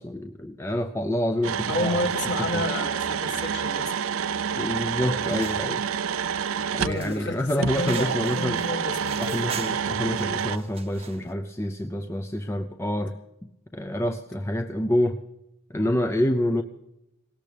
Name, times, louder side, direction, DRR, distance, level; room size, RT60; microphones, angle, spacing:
voice 1, 0.0-2.1 2.5-2.6 4.6-5.9 6.7-8.6 9.2-13.2 13.7-15.2 15.7-16.6, left 1 dB, 10° left, 7 dB, 0.4 m, -27 dB
sound 1, 1.4-7.0 7.6-10.6, right 7 dB, 70° right, 0.5 m, -28 dB
voice 2, 1.7-3.9 6.7-9.4, left 1 dB, 50° left, 4 dB, 1.7 m, -31 dB
sound 2, 5.2-11.3, right 5 dB, 25° right, 0.8 m, -42 dB
20.0 x 18.0 x 3.4 m, 0.90 s
head